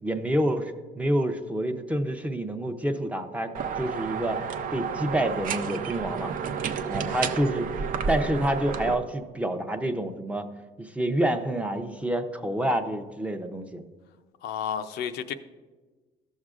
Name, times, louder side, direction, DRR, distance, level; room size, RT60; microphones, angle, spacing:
voice 1, 0.0-3.5 3.8-4.4 4.7-6.3 6.9-7.7 8.1-10.5 10.8-13.8, right 1 dB, 10° right, 6 dB, 0.6 m, -28 dB
sound 1, 3.5-8.9, right 6 dB, 55° right, 0.6 m, -31 dB
voice 2, 14.4-15.3, left 8 dB, 75° left, 8 dB, 0.5 m, -31 dB
14.5 x 6.4 x 2.4 m, 1.3 s
cardioid pair, 110°, 17 cm